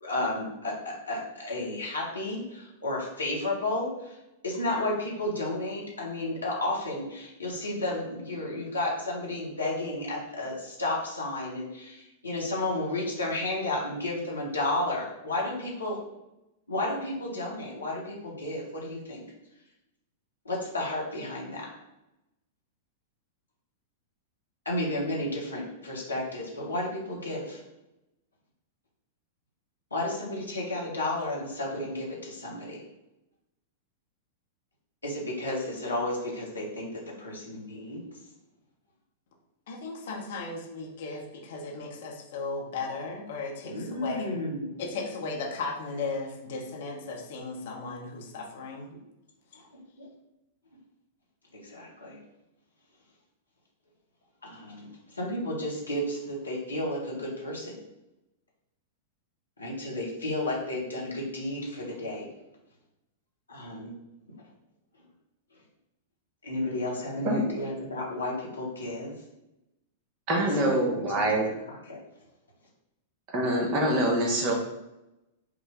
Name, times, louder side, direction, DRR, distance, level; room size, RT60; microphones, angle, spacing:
voice 1, 0.0-4.2 4.4-16.0 16.7-19.2 20.4-21.7 24.6-27.6 29.9-32.8 35.0-38.0 43.6-44.7 49.5-50.1 51.5-52.2 54.4-57.8 59.6-62.3 63.5-63.9 66.4-69.1 70.4-72.0, left 1 dB, 80° left, -3 dB, 1.2 m, -32 dB
voice 2, 39.7-44.3 44.8-48.9, left 3 dB, 55° left, 1 dB, 0.8 m, -36 dB
voice 3, 70.3-71.5 73.3-74.5, right 1 dB, 40° right, 0 dB, 1.0 m, -25 dB
5.0 x 2.2 x 3.5 m, 0.92 s
figure-of-eight pair, 95°, 0 cm